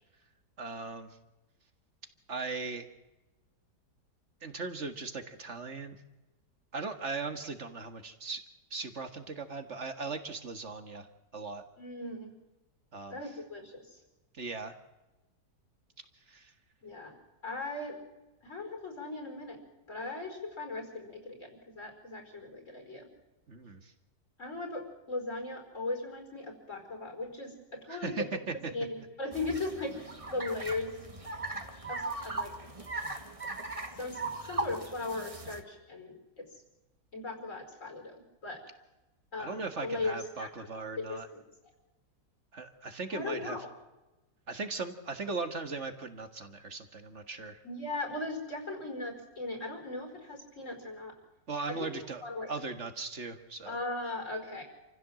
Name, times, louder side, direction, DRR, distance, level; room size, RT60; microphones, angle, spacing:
voice 1, 0.6-1.2 2.3-2.8 4.4-6.0 6.7-8.4 8.7-11.1 11.3-11.6 12.9-13.2 14.3-14.7 16.3-16.5 23.5-23.9 27.9-28.5 39.4-41.3 42.5-43.6 44.5-47.6 51.5-52.2 52.5-53.8, right 4 dB, 45° right, 8 dB, 1.9 m, -38 dB
voice 2, 11.8-12.3 13.1-14.0 16.8-17.1 17.4-18.0 18.4-19.6 19.9-23.1 24.4-28.3 28.7-30.0 30.3-31.0 31.9-32.5 34.0-36.5 37.1-38.6 39.3-41.4 43.1-43.7 47.6-51.1 51.7-51.9 52.2-52.5 53.7-54.6, left 2 dB, 45° left, 4 dB, 5.5 m, -38 dB
sound 1, 29.3-35.6, right 2 dB, 20° right, 1.8 m, -39 dB
28.0 x 15.5 x 7.6 m, 1.1 s
omnidirectional pair, 1.8 m